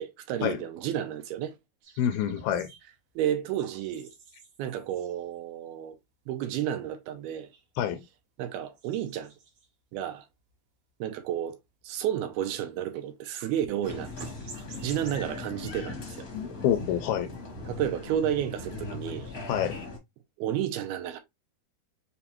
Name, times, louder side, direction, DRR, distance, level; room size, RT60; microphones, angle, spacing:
voice 1, 0.0-1.5 3.2-4.1 4.6-6.0 6.3-7.5 8.4-9.3 9.9-10.3 11.0-11.6 11.8-14.3 14.8-16.3 17.7-19.3 20.4-21.2, right 10 dB, 80° right, 2.4 m, -31 dB
sound 1, 1.8-5.5 6.0-6.1 6.3-6.4 7.0-8.2 8.5-10.0 10.3-10.6 10.9-11.3 11.6-13.2 13.4-15.2, right 5 dB, 60° right, 1.8 m, -52 dB
voice 2, 2.0-2.7 7.8-8.0 16.3-17.3 19.5-19.8, left 10 dB, 80° left, 2.2 m, -27 dB
Applause, 13.8-20.0, left 3 dB, 60° left, 0.9 m, -39 dB
6.9 x 2.3 x 2.9 m
omnidirectional pair, 4.6 m